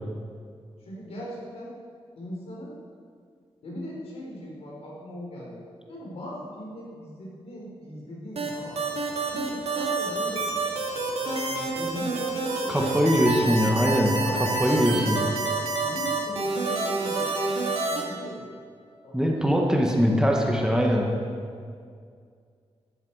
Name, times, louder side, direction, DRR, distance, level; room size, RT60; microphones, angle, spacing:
voice 1, 0.9-1.7 2.1-2.7 3.6-5.6 5.9-8.8 9.3-10.5 11.2-13.1 13.4-13.5 14.2-15.2 15.7-18.5 19.0-19.9, equal, 80° left, -4 dB, 4.4 m, -39 dB
sound 1, 8.4-18.0, right 3 dB, 90° right, 2.6 m, -28 dB
voice 2, 12.7-15.2 19.1-21.1, equal, 5° right, 0 dB, 1.3 m, -22 dB
15.5 x 12.0 x 4.8 m, 2.2 s
wide cardioid pair, 175°, 10 cm